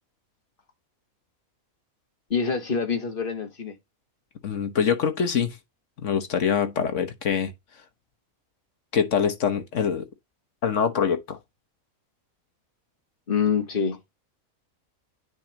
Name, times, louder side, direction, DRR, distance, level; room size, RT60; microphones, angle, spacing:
voice 1, 2.3-3.8 13.3-14.0, left 6 dB, 40° left, 1.7 m, -25 dB
voice 2, 4.4-5.6 6.0-7.5 8.9-10.1 10.6-11.4, left 7 dB, 60° left, 1.4 m, -24 dB
9.7 x 3.7 x 2.9 m
omnidirectional pair, 1.5 m